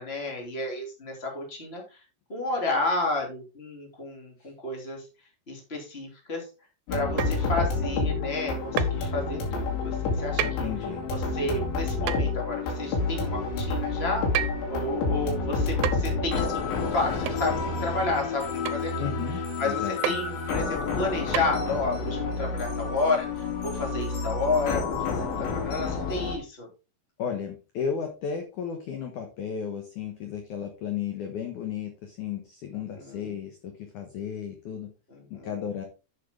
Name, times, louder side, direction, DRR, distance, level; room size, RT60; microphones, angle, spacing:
voice 1, 0.0-1.8 2.3-5.0 5.5-6.4 6.9-10.7 11.1-14.3 14.7-16.6 16.9-19.1 19.6-26.7 33.0-33.4 35.1-35.6, left 2 dB, 20° left, 0 dB, 2.3 m, -31 dB
sound 1, 6.9-26.4, left 4 dB, 90° left, 4.8 m, -29 dB
sound 2, 7.2-7.5 8.8-9.0 10.4-10.6 12.1-12.3 14.3-14.7 15.8-16.1 17.3-17.4 18.7-18.9 20.0-20.2 21.3-21.4, right 12 dB, 80° right, 2.9 m, -30 dB
voice 2, 10.4-11.1 19.0-20.2 27.2-34.9 35.3-35.8, left 7 dB, 70° left, 5 dB, 1.9 m, -34 dB
8.5 x 8.0 x 3.7 m, 0.31 s
omnidirectional pair, 5.0 m